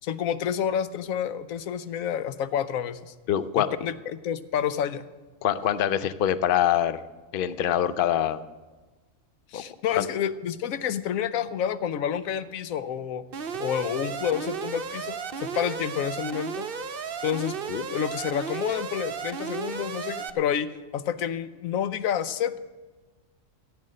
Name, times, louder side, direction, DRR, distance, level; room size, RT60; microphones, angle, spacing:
voice 1, 0.0-3.1 3.6-5.0 9.5-13.2 13.6-16.7 17.2-17.6 17.9-22.6, left 9 dB, 85° left, 13 dB, 1.1 m, -29 dB
voice 2, 3.3-3.7 5.4-7.0 7.3-8.4 9.5-9.6 10.0-10.1 17.7-17.8, left 10 dB, 55° left, 14 dB, 0.6 m, -24 dB
Alarm, 13.3-20.3, right 6 dB, 50° right, 0.8 m, -34 dB
15.0 x 8.6 x 6.4 m, 1.3 s
omnidirectional pair, 1.4 m